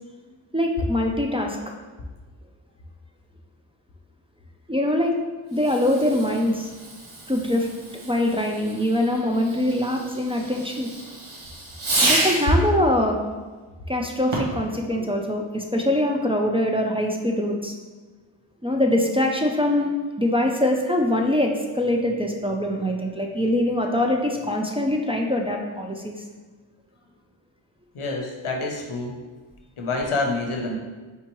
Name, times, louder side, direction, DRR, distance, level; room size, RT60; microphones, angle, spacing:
voice 1, 0.5-1.6 4.7-5.2 5.5-6.7 7.3-7.7 8.0-10.9 12.0-13.2 13.9-17.7 18.6-19.9 20.2-26.2, left 1 dB, 15° right, 0 dB, 0.4 m, -23 dB
Fireworks, 5.5-12.6 14.2-14.7, right 2 dB, 85° right, 1.0 m, -30 dB
voice 2, 27.9-29.2 29.8-30.8, left 3 dB, 90° left, 2 dB, 0.8 m, -27 dB
4.4 x 3.5 x 3.0 m, 1.3 s
wide cardioid pair, 55°, 48 cm